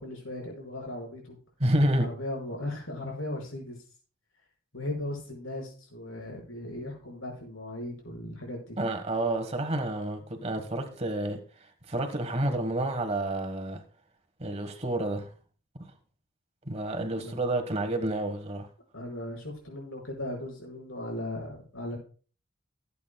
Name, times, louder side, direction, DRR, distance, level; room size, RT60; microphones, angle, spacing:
voice 1, 0.0-1.4 2.0-3.8 4.7-8.8 17.2-17.4 18.9-22.0, left 1 dB, 85° left, 5.7 m, -37 dB
voice 2, 1.6-2.1 8.8-11.4 11.9-13.8 14.4-15.3 15.7-15.9 16.7-18.7, right 1 dB, 30° right, 1.4 m, -29 dB
18.0 x 8.4 x 2.3 m
head